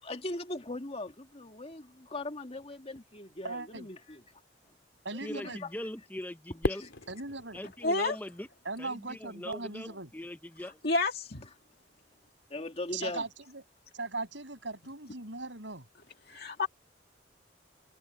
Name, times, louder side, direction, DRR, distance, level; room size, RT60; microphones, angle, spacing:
voice 1, 0.0-4.2 5.1-5.7 6.5-6.9 12.5-13.2, left 2 dB, 35° left, 2.2 m, -40 dB
voice 2, 3.4-3.9 5.0-5.6 7.1-7.6 8.6-10.1 12.9-13.6 13.9-15.8, right 3 dB, 80° right, 7.0 m, -39 dB
voice 3, 5.7-6.4 6.6-6.8 7.5-8.5 8.8-8.9 9.4-9.9 10.1-10.7, left 1 dB, 10° left, 0.9 m, -40 dB
Fireworks, 6.6-8.9, left 1 dB, 90° left, 3.0 m, -37 dB
voice 4, 7.8-8.2 10.6-11.5 16.3-16.7, left 3 dB, 55° left, 2.1 m, -30 dB
head